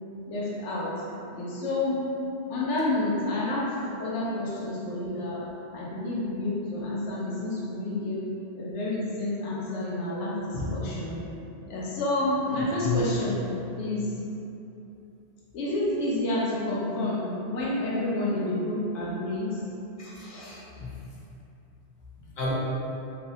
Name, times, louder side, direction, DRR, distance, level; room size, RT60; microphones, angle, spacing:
voice 1, 0.3-0.9 1.3-2.0 2.5-3.7 4.0-5.4 5.7-8.2 8.5-11.2 11.7-13.4 13.8-14.1 15.5-19.6, left 1 dB, 85° left, -6 dB, 0.9 m, -29 dB
voice 2, 20.0-20.9 22.4-22.5, left 4 dB, 60° left, -6 dB, 0.6 m, -32 dB
2.6 x 2.0 x 2.7 m, 2.8 s
omnidirectional pair, 1.2 m